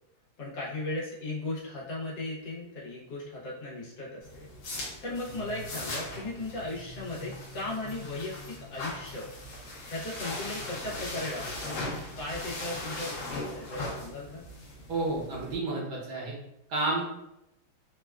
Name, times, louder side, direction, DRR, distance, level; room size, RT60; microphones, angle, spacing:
voice 1, 0.4-4.5 4.8-9.3 9.9-14.4, left 2 dB, 85° left, -6 dB, 1.7 m, -37 dB
sound 1, 4.2-15.6, left 2 dB, 70° left, 1.4 m, -39 dB
voice 2, 14.9-16.3 16.7-17.1, right 2 dB, 70° right, -4 dB, 1.4 m, -30 dB
4.0 x 2.2 x 2.3 m, 0.85 s
omnidirectional pair, 1.9 m